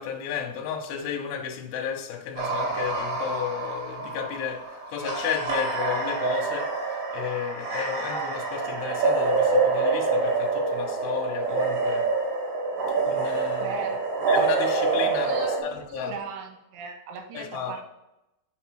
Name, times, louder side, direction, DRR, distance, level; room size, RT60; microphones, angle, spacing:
voice 1, 0.0-12.1 13.1-13.9 14.3-16.1 17.3-17.8, left 8 dB, 75° left, 2.8 m, -33 dB
sound 1, 2.4-15.6, right 4 dB, 65° right, 3.3 m, -26 dB
voice 2, 13.6-14.0 15.0-17.9, right 6 dB, 85° right, 3.2 m, -38 dB
6.4 x 4.9 x 4.5 m
omnidirectional pair, 5.6 m